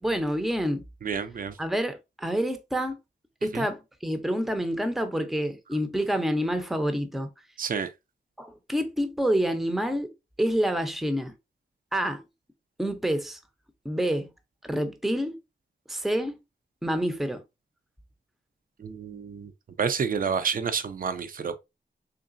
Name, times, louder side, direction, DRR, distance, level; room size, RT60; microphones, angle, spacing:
voice 1, 0.0-0.8 1.6-2.9 3.4-7.3 8.4-10.1 10.4-11.3 11.9-12.2 12.8-13.4 13.8-14.3 14.6-15.4 15.9-16.4 16.8-17.4, equal, ahead, 0.6 m, -27 dB
voice 2, 1.0-1.5 3.5-3.7 7.6-7.9 18.8-19.5 19.8-21.6, right 6 dB, 50° right, 0.5 m, -29 dB
3.9 x 3.1 x 2.5 m
wide cardioid pair, 100°, 19 cm